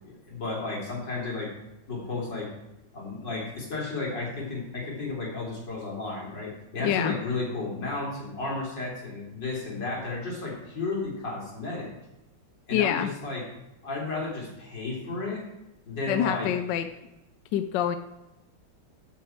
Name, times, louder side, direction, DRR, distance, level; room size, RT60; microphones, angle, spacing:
voice 1, 0.0-1.5 1.9-2.5 2.9-11.9 12.7-13.4 13.8-15.4 15.9-16.5, left 3 dB, 55° left, -3 dB, 4.0 m, -33 dB
voice 2, 6.8-7.2 12.7-13.1 16.1-16.9 17.5-18.0, left 10 dB, 75° left, 10 dB, 1.1 m, -26 dB
14.5 x 7.0 x 4.5 m, 0.94 s
omnidirectional pair, 2.3 m